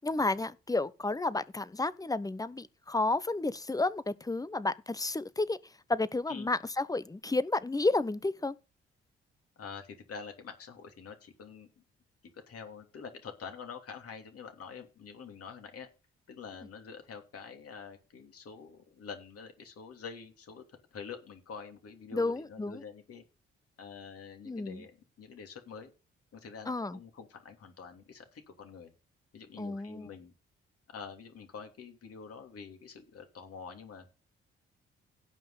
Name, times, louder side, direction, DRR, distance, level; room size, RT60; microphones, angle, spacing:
voice 1, 0.0-5.6 5.9-8.6 22.1-22.8 24.5-24.8 26.7-27.0 29.6-30.1, left 2 dB, 10° left, 0.9 m, -31 dB
voice 2, 9.6-11.8 12.3-15.9 16.3-20.6 20.9-23.2 23.8-25.9 26.3-28.9 29.3-30.3 30.9-34.1, left 6 dB, 55° left, 3.0 m, -46 dB
17.0 x 5.7 x 4.1 m
figure-of-eight pair, 40°, 29 cm